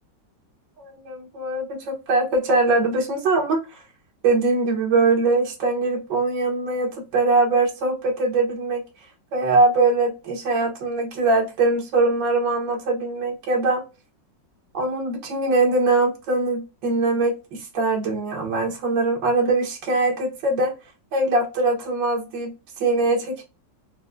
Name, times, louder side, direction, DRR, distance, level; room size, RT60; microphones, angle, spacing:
voice 1, 0.8-3.8 4.2-8.8 9.3-13.8 14.7-20.7 21.1-23.4, right 3 dB, 80° right, -1 dB, 1.8 m, -22 dB
4.8 x 2.2 x 2.5 m, 0.28 s
omnidirectional pair, 2.0 m